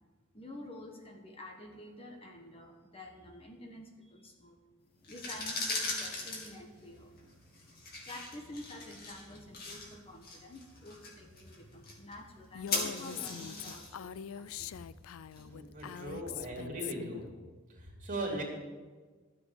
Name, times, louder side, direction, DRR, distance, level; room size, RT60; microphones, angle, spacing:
voice 1, 0.3-4.6 5.1-7.2 8.1-15.0, left 1 dB, 30° left, 2 dB, 1.2 m, -49 dB
Fosfor prende, 5.0-15.8, left 3 dB, 50° left, 2.5 m, -41 dB
Female speech woman speaking, 12.5-17.2, left 9 dB, 70° left, 0.4 m, -43 dB
voice 2, 15.4-17.3 17.8-18.4, right 1 dB, 40° right, -1 dB, 3.1 m, -38 dB
13.0 x 7.3 x 7.2 m, 1.4 s
head